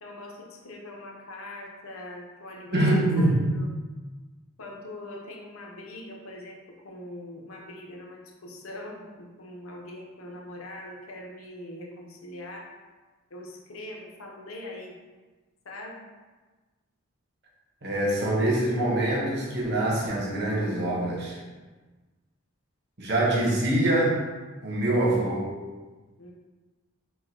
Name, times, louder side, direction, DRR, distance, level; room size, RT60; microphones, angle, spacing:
voice 1, 0.0-2.9 3.2-3.7 4.6-12.7 13.3-15.0 15.6-16.1 26.2-26.3, left 1 dB, 75° left, -1 dB, 0.7 m, -42 dB
voice 2, 2.7-3.6 17.8-21.4 23.0-24.2 24.6-25.5, right 1 dB, 50° right, -3 dB, 0.9 m, -24 dB
4.5 x 2.2 x 4.3 m, 1.3 s
head